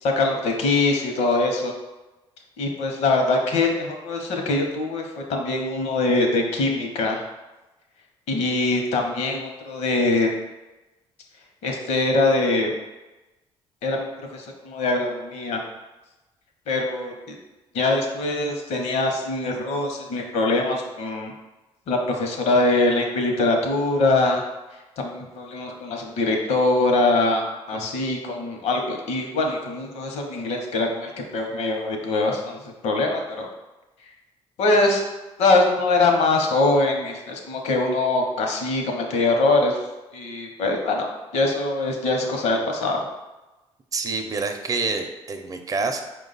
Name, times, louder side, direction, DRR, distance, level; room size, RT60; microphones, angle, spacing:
voice 1, 0.0-1.7 2.6-7.2 8.3-10.3 11.6-12.7 13.8-15.6 16.7-17.4 17.7-21.3 21.9-24.4 25.0-27.4 27.7-33.5 34.6-35.0 35.4-39.8 40.1-41.1 41.3-43.0, left 2 dB, 75° left, 2 dB, 0.8 m, -23 dB
voice 2, 43.9-46.0, right 4 dB, 30° right, 5 dB, 0.5 m, -27 dB
4.8 x 2.3 x 4.0 m, 1.1 s
supercardioid pair, 75°, 11 cm